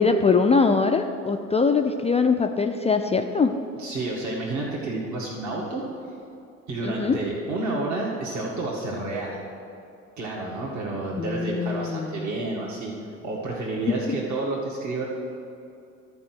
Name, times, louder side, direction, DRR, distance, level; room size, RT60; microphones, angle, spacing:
voice 1, 0.0-3.6 6.8-7.2 11.2-12.2 13.9-14.0, left 4 dB, 15° left, 5 dB, 0.4 m, -22 dB
voice 2, 3.8-5.8 6.7-9.4 10.2-12.9 13.2-15.0, right 2 dB, 45° right, -4 dB, 1.9 m, -30 dB
12.5 x 4.7 x 6.1 m, 2.6 s
figure-of-eight pair, 55°, 39 cm